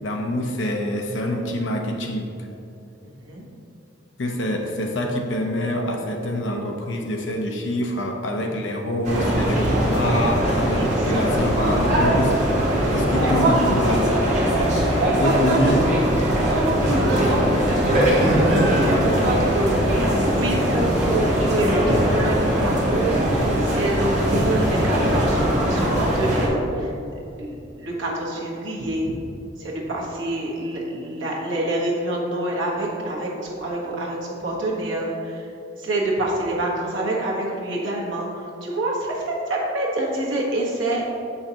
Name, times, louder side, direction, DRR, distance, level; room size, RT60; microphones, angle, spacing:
voice 1, 0.0-2.5 4.2-12.6 12.9-14.1 14.4-15.9, left 1 dB, 70° left, 2 dB, 0.8 m, -26 dB
voice 2, 3.0-3.4 10.8-11.8 13.2-13.5 14.5-14.6 15.0-15.8 16.5-19.7 20.3-26.9 27.4-29.1 29.6-35.5 35.8-41.0, right 1 dB, 80° right, -3 dB, 1.3 m, -26 dB
sound 1, 9.0-26.5, equal, 40° right, 1.4 m, -21 dB
6.8 x 5.6 x 2.9 m, 2.8 s
head